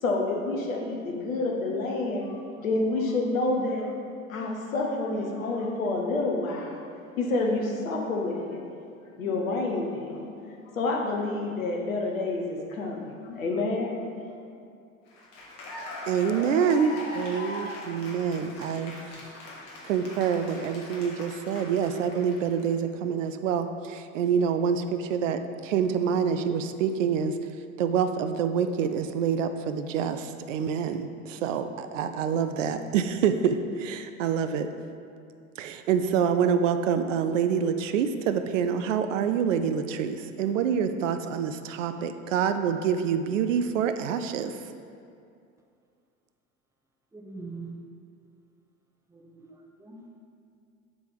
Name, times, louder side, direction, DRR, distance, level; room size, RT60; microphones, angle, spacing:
voice 1, 0.0-3.9 4.3-6.8 7.2-8.6 9.2-10.3 10.7-14.0, left 2 dB, 70° left, 0 dB, 1.1 m, -28 dB
Cheering / Applause, 15.1-22.6, left 2 dB, 45° left, 1.5 m, -40 dB
voice 2, 16.1-18.9 19.8-27.3 27.8-34.7 35.6-44.5, right 7 dB, 60° right, 9 dB, 0.6 m, -26 dB
voice 3, 47.1-47.7 49.1-50.0, right 4 dB, 5° right, 0 dB, 0.8 m, -43 dB
7.0 x 3.4 x 6.0 m, 2.4 s
figure-of-eight pair, 75°, 42 cm